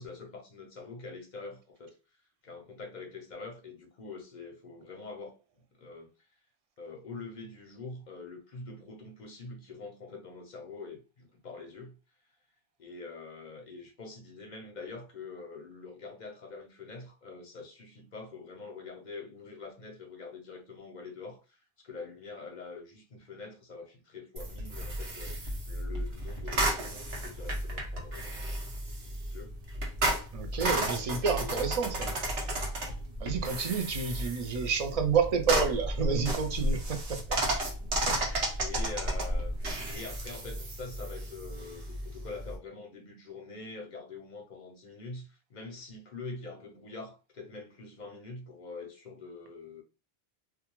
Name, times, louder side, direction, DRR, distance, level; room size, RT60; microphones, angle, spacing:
voice 1, 0.0-1.9 2.4-5.3 5.8-6.1 6.8-11.9 12.8-28.7 29.3-29.6 31.3-32.2 33.7-33.9 37.3-37.5 38.6-39.6 39.9-49.8, left 3 dB, 55° left, 0.6 m, -45 dB
sound 1, 24.4-42.6, right 1 dB, 75° right, 1.1 m, -33 dB
voice 2, 30.3-32.1 33.2-37.2 38.1-38.4, right 6 dB, 50° right, 0.4 m, -30 dB
2.3 x 2.2 x 2.9 m
omnidirectional pair, 1.1 m